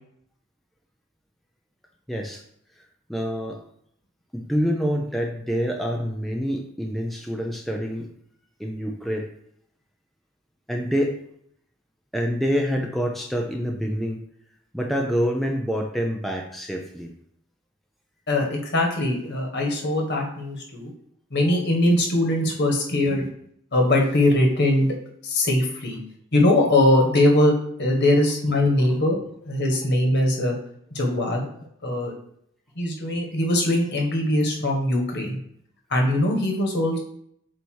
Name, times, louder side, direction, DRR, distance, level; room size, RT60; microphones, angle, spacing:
voice 1, 2.1-2.4 3.1-3.6 4.3-8.1 8.6-9.3 10.7-11.2 12.1-14.2 14.7-17.1 21.4-21.6 28.9-29.0, equal, ahead, 0 dB, 0.6 m, -26 dB
voice 2, 18.3-20.9 21.3-23.3 23.7-24.9 25.2-26.0 26.3-27.5 27.8-30.5 30.9-31.5 31.8-32.1 32.7-35.4 35.9-37.0, left 1 dB, 55° left, 1 dB, 1.6 m, -21 dB
7.9 x 2.8 x 4.6 m, 0.69 s
head